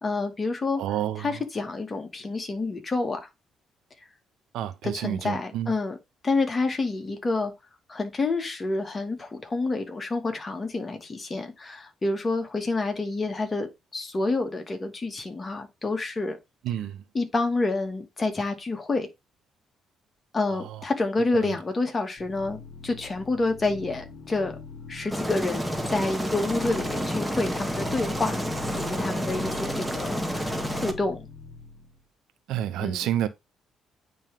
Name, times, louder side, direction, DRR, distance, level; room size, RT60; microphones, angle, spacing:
voice 1, 0.0-0.8 1.2-3.3 4.8-6.0 6.2-7.5 7.9-16.4 17.1-19.1 20.3-24.6 24.9-28.4 28.8-31.3 32.8-33.1, left 3 dB, 30° left, 2.2 m, -28 dB
voice 2, 0.8-1.4 4.5-5.7 16.6-17.0 20.5-20.8 21.3-21.6 32.5-33.3, right 11 dB, 70° right, 0.7 m, -30 dB
sound 1, 22.2-32.0, left 4 dB, 55° left, 1.1 m, -42 dB
Aircraft, 25.1-30.9, equal, ahead, 1.6 m, -30 dB
9.2 x 3.5 x 3.5 m
hypercardioid pair, 45°, 0 cm